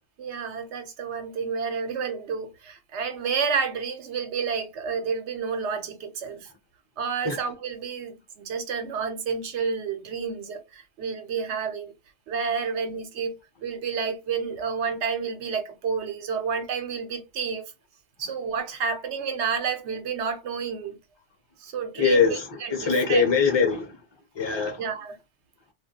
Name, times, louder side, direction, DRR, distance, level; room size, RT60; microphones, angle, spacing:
voice 1, 0.2-6.5 7.0-11.9 12.3-13.3 13.6-17.6 18.2-21.0 21.6-23.3 24.8-25.2, right 6 dB, 75° right, 0.9 m, -30 dB
voice 2, 22.0-23.9 24.4-24.8, left 5 dB, 25° left, 0.7 m, -22 dB
2.3 x 2.2 x 2.7 m
omnidirectional pair, 1.2 m